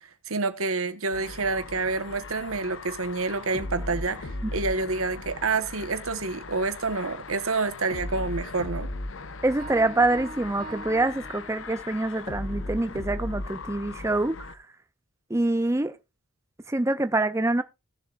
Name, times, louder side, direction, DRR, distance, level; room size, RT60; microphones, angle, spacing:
voice 1, 0.3-8.9, right 3 dB, 75° right, 1.3 m, -28 dB
sound 1, 1.1-14.6, left 2 dB, 60° left, 0.8 m, -37 dB
voice 2, 9.4-14.4 15.3-15.9 16.7-17.6, right 2 dB, 15° right, 0.5 m, -25 dB
Piano, 9.6-12.0, right 2 dB, 45° right, 3.0 m, -43 dB
18.5 x 7.1 x 2.5 m
head